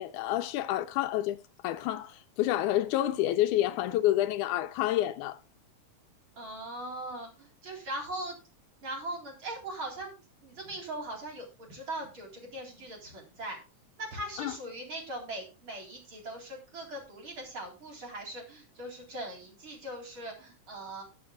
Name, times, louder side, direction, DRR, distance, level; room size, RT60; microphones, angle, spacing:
voice 1, 0.0-1.4 1.6-5.4 14.4-14.6, left 14 dB, 80° left, 2.1 m, -28 dB
voice 2, 6.4-8.4 8.8-10.1 10.4-13.6 14.0-21.0, right 1 dB, 40° right, 4.4 m, -40 dB
19.5 x 7.1 x 2.3 m
omnidirectional pair, 3.6 m